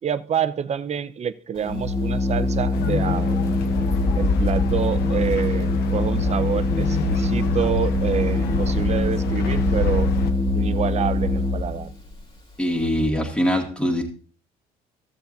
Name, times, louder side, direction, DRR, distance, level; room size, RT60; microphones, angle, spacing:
voice 1, 0.0-3.4 4.2-10.1 10.5-11.9, right 8 dB, 40° right, 0.7 m, -27 dB
Organ, 1.6-11.9, left 2 dB, 35° left, 2.2 m, -22 dB
sound 1, 2.7-10.3, left 8 dB, 80° left, 0.9 m, -32 dB
voice 2, 12.6-14.0, equal, 5° left, 2.0 m, -22 dB
14.5 x 7.0 x 2.6 m
cardioid pair, 85°, 17 cm